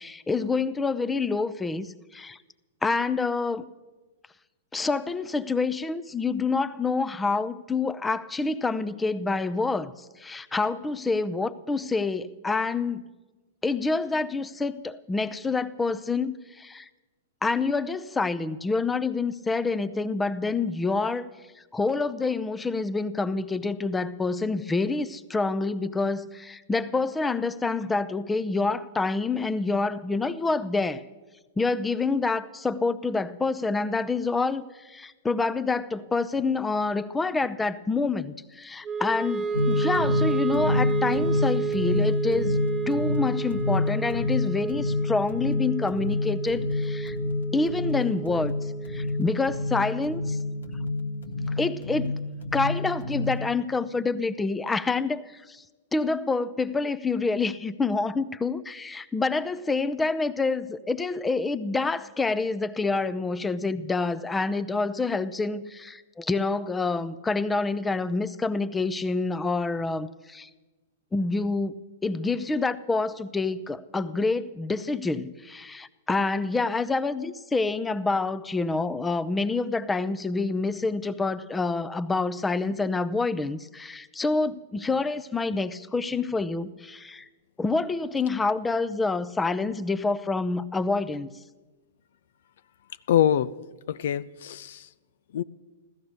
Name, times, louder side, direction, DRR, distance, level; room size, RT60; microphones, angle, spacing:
voice 1, 0.0-2.4 2.8-3.7 4.7-9.9 10.2-13.0 13.6-16.9 17.4-21.3 21.7-31.0 31.6-42.6 42.9-47.2 47.5-48.5 48.9-50.4 51.5-52.1 52.5-55.6 55.9-70.5 71.1-71.8 72.0-87.3 87.6-91.3, left 3 dB, 10° left, 13 dB, 0.6 m, -27 dB
Wind instrument woodwind instrument, 38.8-51.1, right 5 dB, 20° right, 1.2 m, -32 dB
sound 1, 39.5-53.5, left 2 dB, 85° left, 1.7 m, -28 dB
voice 2, 93.1-93.5 93.9-94.9 95.3-95.4, left 10 dB, 65° left, 15 dB, 0.5 m, -24 dB
15.5 x 13.5 x 6.6 m, 1.2 s
hypercardioid pair, 120°, 0 cm